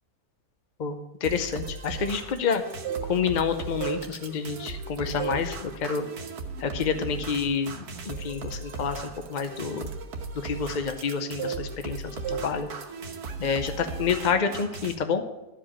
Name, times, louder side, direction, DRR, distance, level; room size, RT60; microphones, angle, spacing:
voice 1, 0.8-2.6 3.0-6.1 6.6-9.0 9.3-9.9 10.4-12.7 13.4-15.2, left 6 dB, 50° left, 8 dB, 0.5 m, -28 dB
sound 1, 1.2-14.9, right 3 dB, 70° right, 1.7 m, -38 dB
sound 2, 2.6-3.4 3.7-4.8 5.2-5.5 5.9-6.1 6.8-6.9 7.2-11.1 11.4-11.9 12.2-12.5 12.8-13.1, right 8 dB, 85° right, 1.4 m, -36 dB
12.5 x 5.1 x 7.2 m, 1.0 s
omnidirectional pair, 1.8 m